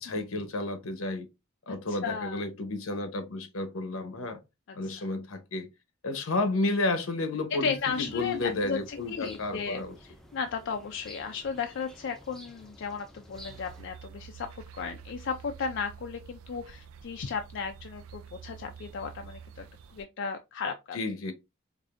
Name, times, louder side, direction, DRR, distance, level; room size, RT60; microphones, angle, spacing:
voice 1, 0.0-1.3 1.7-4.4 4.7-5.7 6.0-10.0 20.9-21.3, left 2 dB, 85° left, 0.9 m, -31 dB
voice 2, 1.9-2.4 4.7-5.1 7.5-19.7 19.9-21.0, left 5 dB, 60° left, 0.4 m, -35 dB
sound 1, 7.8-13.8, equal, ahead, 0.5 m, -52 dB
sound 2, 13.3-20.1, right 7 dB, 90° right, 0.4 m, -48 dB
4.8 x 2.6 x 2.5 m
head